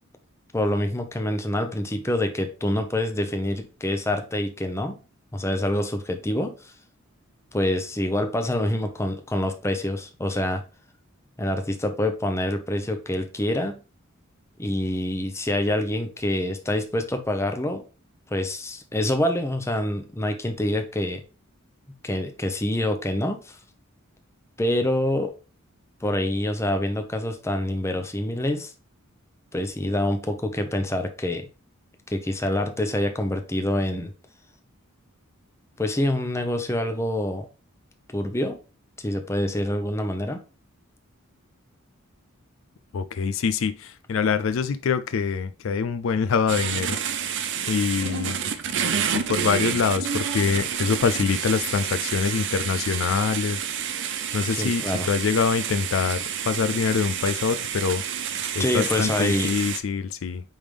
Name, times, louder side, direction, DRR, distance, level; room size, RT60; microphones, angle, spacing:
voice 1, 0.5-5.0 5.3-6.7 7.5-10.6 11.4-13.8 14.6-17.8 18.3-21.2 22.0-23.6 24.6-25.3 26.0-28.7 29.5-31.5 32.1-34.1 35.8-37.5 38.1-38.6 39.0-40.4 54.6-55.1 58.6-59.5, left 1 dB, 15° left, 0.8 m, -26 dB
voice 2, 42.9-47.0 47.6-48.3 49.1-53.6 54.3-58.0 58.6-60.4, left 6 dB, 65° left, 0.4 m, -25 dB
sound 1, 46.5-59.8, right 8 dB, 60° right, 0.7 m, -29 dB
8.7 x 3.6 x 3.3 m
head